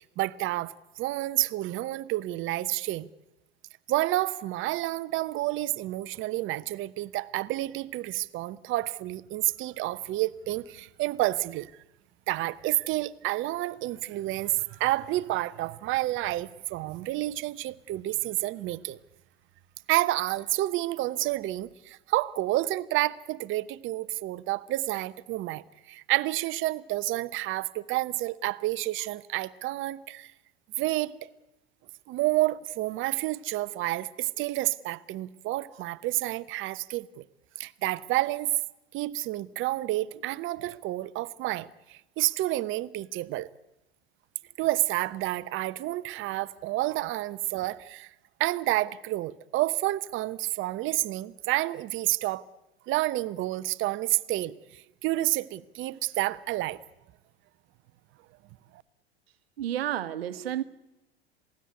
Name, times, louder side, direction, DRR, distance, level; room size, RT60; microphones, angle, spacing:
voice 1, 0.0-3.1 3.9-11.7 12.3-19.0 19.9-30.3 30.8-31.3 32.1-37.2 37.6-38.5 38.9-43.5 44.6-48.1 48.4-52.4 52.9-56.8, right 17 dB, 40° right, 0.9 m, -29 dB
voice 2, 59.6-60.6, right 11 dB, 70° right, 1.2 m, -31 dB
27.0 x 18.0 x 9.7 m
figure-of-eight pair, 85°, 31 cm